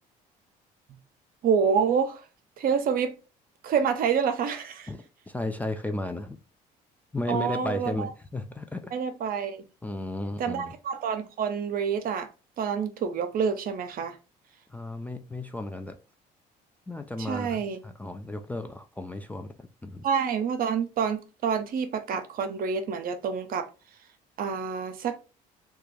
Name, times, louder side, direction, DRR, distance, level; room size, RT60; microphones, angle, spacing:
voice 1, 1.4-2.2 2.6-3.1 3.6-4.9 7.3-8.1 8.9-9.6 10.4-12.3 12.6-14.2 17.2-17.8 20.0-23.7 24.4-25.2, right 6 dB, 55° right, 0.6 m, -27 dB
voice 2, 4.9-6.4 7.1-8.8 9.8-10.7 14.7-16.0 16.9-19.5 19.8-20.0, left 1 dB, 10° left, 0.3 m, -34 dB
2.4 x 2.3 x 3.1 m
supercardioid pair, 70°, 18 cm